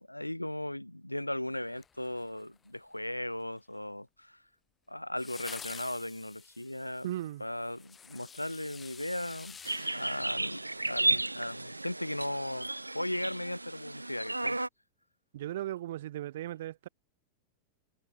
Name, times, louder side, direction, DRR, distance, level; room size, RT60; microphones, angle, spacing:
voice 1, 0.0-4.4 4.9-7.1 7.4-9.6 9.9-14.6, left 1 dB, 85° left, 2.2 m, -37 dB
sound 1, 1.7-2.7 5.2-11.0 11.3-11.4, left 6 dB, 20° left, 4.6 m, -49 dB
voice 2, 7.0-7.5 15.3-16.9, right 13 dB, 55° right, 3.7 m, -37 dB
sound 2, 9.6-14.7, right 2 dB, 85° right, 0.4 m, -33 dB
figure-of-eight pair, 90°, 0 cm